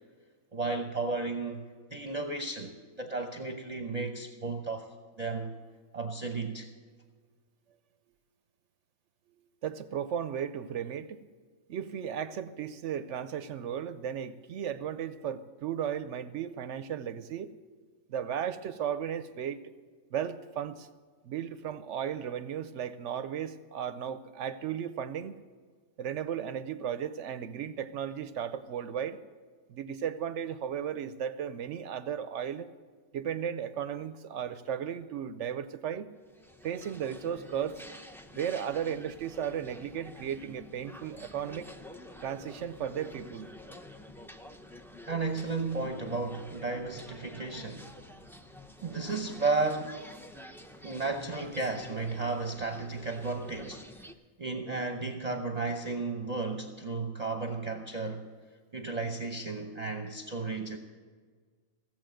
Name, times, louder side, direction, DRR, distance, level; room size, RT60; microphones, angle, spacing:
voice 1, 0.5-5.5 5.9-6.7 45.1-48.0 48.8-50.1 50.8-53.9 54.4-58.3 58.7-60.8, right 3 dB, 35° right, 4 dB, 0.8 m, -34 dB
voice 2, 9.4-11.2 11.7-17.5 18.1-19.6 20.1-20.9 21.2-25.3 26.0-29.2 29.7-32.7 33.1-36.1 36.6-37.8 38.4-41.7 42.2-43.5, right 9 dB, 70° right, 13 dB, 0.9 m, -35 dB
sound 1, 36.2-54.1, left 1 dB, 5° left, 0.3 m, -49 dB
16.5 x 7.5 x 7.6 m, 1.6 s
omnidirectional pair, 1.4 m